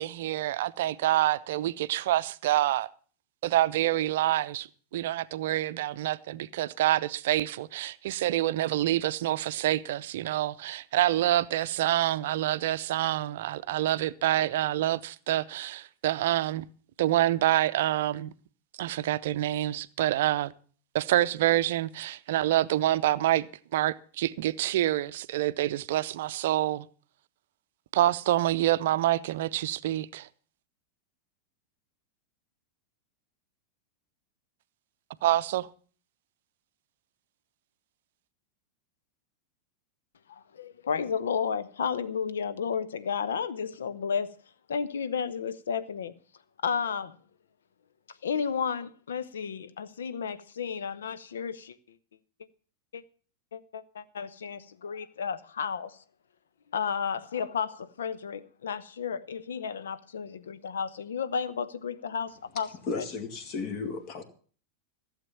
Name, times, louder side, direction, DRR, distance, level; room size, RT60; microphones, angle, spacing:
voice 1, 0.0-2.9 3.4-4.7 4.9-16.6 17.0-18.3 18.8-20.5 20.9-23.5 23.7-26.9 27.9-30.3 35.2-35.7, right 14 dB, 55° right, 0.6 m, -27 dB
voice 2, 40.3-44.4 44.7-46.1 46.6-47.2 48.2-51.7 52.9-53.0 53.5-56.0 56.7-62.7 62.9-63.0, left 6 dB, 65° left, 0.8 m, -32 dB
voice 3, 62.9-64.2, left 4 dB, 40° left, 2.1 m, -34 dB
15.5 x 7.5 x 7.0 m
figure-of-eight pair, 90°, 0 cm